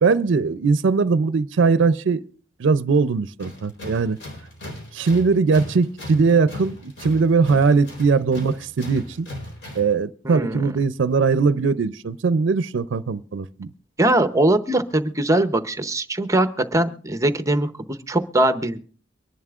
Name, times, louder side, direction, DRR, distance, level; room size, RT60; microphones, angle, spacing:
voice 1, 0.0-2.2 2.6-4.2 4.9-9.3 9.8-13.7, right 4 dB, 75° right, 0.4 m, -20 dB
Tools, 3.4-10.0, left 1 dB, 70° left, 4.1 m, -38 dB
voice 2, 10.2-10.6 14.0-17.7 18.1-18.8, right 1 dB, 15° right, 0.7 m, -21 dB
23.5 x 11.0 x 2.4 m
head